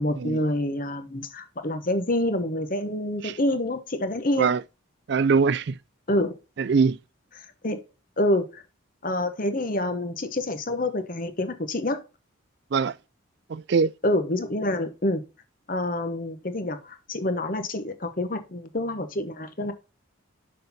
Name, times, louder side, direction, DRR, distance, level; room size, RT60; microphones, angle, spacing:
voice 1, 0.0-4.5 6.1-6.4 7.4-7.8 8.2-8.6 9.0-12.0 14.0-15.2 15.7-19.7, left 1 dB, 45° left, 1.1 m, -27 dB
voice 2, 5.1-5.8 6.6-7.0 12.7-12.9 13.5-13.9, right 5 dB, 55° right, 0.4 m, -22 dB
6.6 x 5.8 x 4.1 m
head